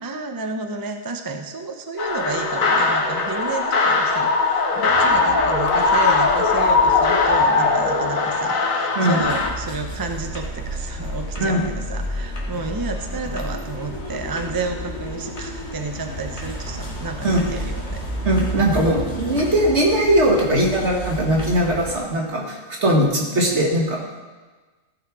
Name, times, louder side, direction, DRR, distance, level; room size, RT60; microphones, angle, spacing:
voice 1, 0.0-18.1, right 3 dB, 25° right, 5 dB, 0.5 m, -31 dB
sound 1, 2.0-9.5, left 4 dB, 85° left, 1.6 m, -19 dB
sound 2, 4.7-10.0 13.1-18.4, left 2 dB, 15° left, 0.8 m, -37 dB
voice 2, 9.0-9.3 11.4-11.7 17.2-17.5 18.3-24.2, right 1 dB, 55° right, -1 dB, 2.0 m, -20 dB
sound 3, 9.2-22.0, equal, 55° left, 2.0 m, -31 dB
14.5 x 5.7 x 4.7 m, 1.3 s
omnidirectional pair, 1.4 m